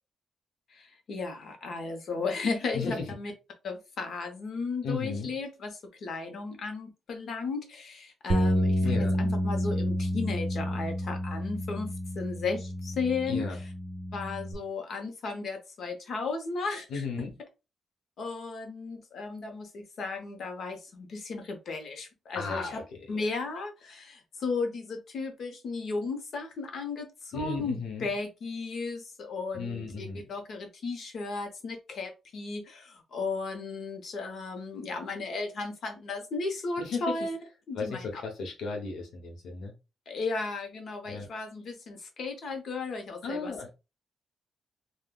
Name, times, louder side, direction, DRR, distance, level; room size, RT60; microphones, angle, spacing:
voice 1, 0.7-3.3 3.6-13.6 14.1-17.0 18.2-22.8 23.1-37.4 37.7-38.2 40.1-43.5, left 4 dB, 55° left, 5 dB, 0.8 m, -35 dB
voice 2, 2.7-3.1 4.8-5.3 8.8-9.2 13.3-13.6 16.9-17.3 22.3-23.2 27.3-28.1 29.5-30.2 36.8-37.2 37.7-39.7 41.1-41.3 43.2-43.7, left 4 dB, 85° left, 3 dB, 0.9 m, -35 dB
sound 1, 8.3-14.5, equal, 35° right, 0.7 m, -30 dB
3.6 x 2.2 x 2.3 m, 0.27 s
wide cardioid pair, 175°, 0 cm